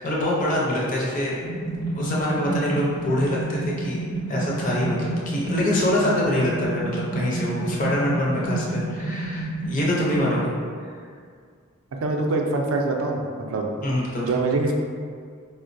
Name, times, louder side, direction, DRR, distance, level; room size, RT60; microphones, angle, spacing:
voice 1, 0.0-1.4 1.6-10.5 13.8-14.4, left 1 dB, 35° left, -5 dB, 0.5 m, -25 dB
sound 1, 1.4-10.3, right 2 dB, 85° left, 0.7 m, -29 dB
voice 2, 12.0-13.2 13.5-13.7 14.2-14.7, right 3 dB, 75° right, 2 dB, 0.4 m, -23 dB
4.4 x 2.0 x 2.5 m, 2.1 s
head